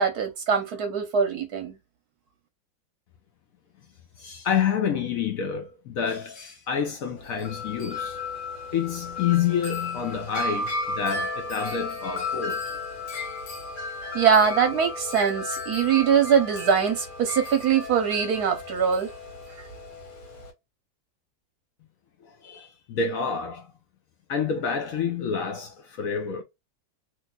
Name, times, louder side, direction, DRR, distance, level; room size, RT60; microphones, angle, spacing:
voice 1, 0.0-1.7 14.1-19.1, right 7 dB, 65° right, 1.0 m, -22 dB
voice 2, 4.2-8.2 8.7-12.6 22.2-23.7 24.3-26.4, left 7 dB, 65° left, 0.9 m, -28 dB
Wind chime, 7.2-20.5, left 3 dB, 80° left, 2.0 m, -34 dB
3.1 x 3.0 x 2.2 m
omnidirectional pair, 2.0 m